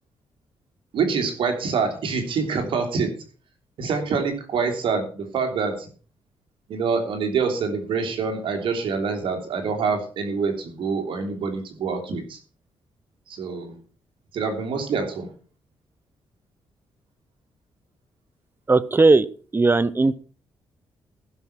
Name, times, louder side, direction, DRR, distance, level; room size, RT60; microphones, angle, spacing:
voice 1, 0.9-3.1 3.8-5.9 6.7-12.4 13.3-13.7 14.3-15.3, right 5 dB, 75° right, 3 dB, 3.2 m, -26 dB
voice 2, 18.7-19.3 19.5-20.1, right 3 dB, 25° right, 18 dB, 0.8 m, -17 dB
15.5 x 6.1 x 5.9 m, 0.39 s
cardioid pair, 80°, 9 cm